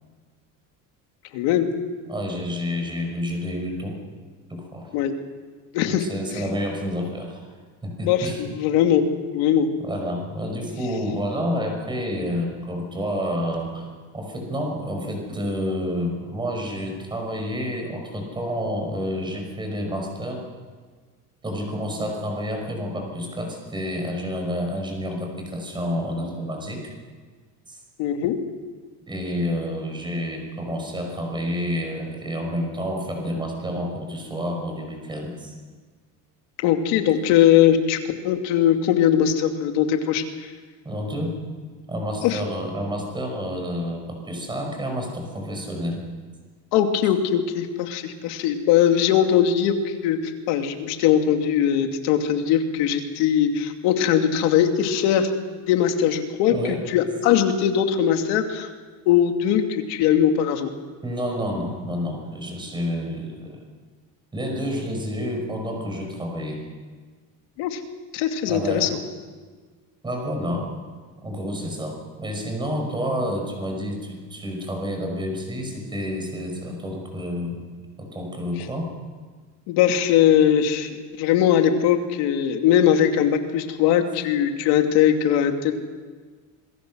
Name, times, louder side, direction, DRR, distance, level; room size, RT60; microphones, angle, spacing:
voice 1, 1.3-1.7 4.9-5.1 5.7-6.0 6.3-6.4 8.0-9.0 9.3-9.7 28.0-28.4 36.6-38.0 38.2-40.2 42.2-42.4 46.7-50.2 50.5-58.7 59.1-60.7 67.6-67.8 68.1-68.9 79.7-85.7, left 9 dB, 85° left, 5 dB, 2.7 m, -20 dB
voice 2, 2.1-4.0 4.5-4.9 5.8-7.4 7.8-8.4 9.8-20.4 21.4-26.9 27.7-27.8 29.1-35.6 40.8-41.4 41.9-46.0 56.5-56.8 61.0-63.6 64.3-66.7 68.5-69.1 70.0-70.7 71.2-77.7 78.0-78.9, equal, 10° right, 2 dB, 5.6 m, -29 dB
26.5 x 22.0 x 6.4 m, 1.5 s
cardioid pair, 175°, 39 cm